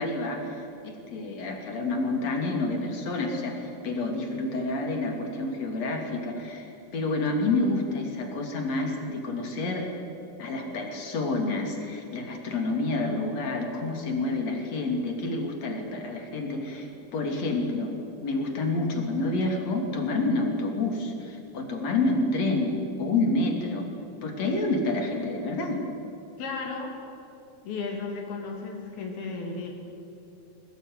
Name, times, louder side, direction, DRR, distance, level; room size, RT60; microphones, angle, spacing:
voice 1, 0.0-6.7 6.9-9.9 10.4-17.9 18.2-23.9 24.2-25.8, left 2 dB, 50° left, 3 dB, 3.8 m, -28 dB
voice 2, 26.4-26.9 27.6-29.7, left 4 dB, 85° left, 1 dB, 4.8 m, -34 dB
23.5 x 18.5 x 9.4 m, 2.7 s
omnidirectional pair, 4.2 m